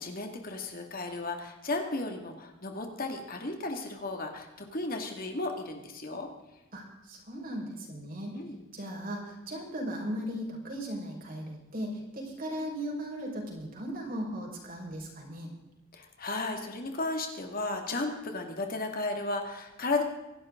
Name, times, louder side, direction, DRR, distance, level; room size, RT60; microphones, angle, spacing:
voice 1, 0.0-6.3 8.3-8.6 15.9-20.0, left 2 dB, 45° left, 4 dB, 2.2 m, -34 dB
voice 2, 6.7-8.4 8.7-15.5, equal, 45° right, -1 dB, 5.2 m, -37 dB
25.5 x 12.5 x 3.8 m, 1.0 s
head